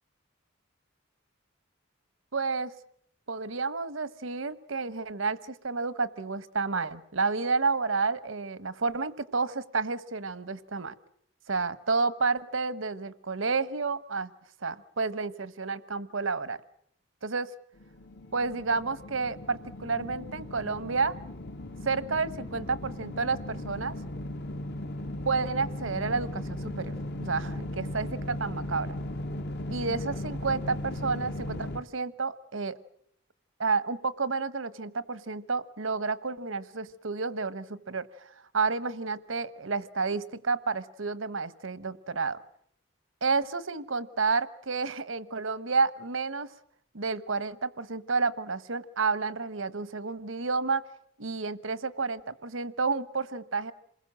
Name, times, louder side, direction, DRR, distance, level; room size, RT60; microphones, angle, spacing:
voice 1, 2.3-2.7 3.3-10.9 11.5-14.3 14.6-16.6 17.2-17.5 18.3-21.2 21.8-24.0 25.2-26.9 27.2-29.0 29.7-32.8 33.6-42.4 43.2-46.5 46.9-50.8 51.2-53.7, right 4 dB, 80° right, 15 dB, 1.1 m, -30 dB
sound 1, 17.8-31.8, left 1 dB, 55° left, 1.2 m, -37 dB
27.5 x 21.0 x 7.6 m, 0.68 s
head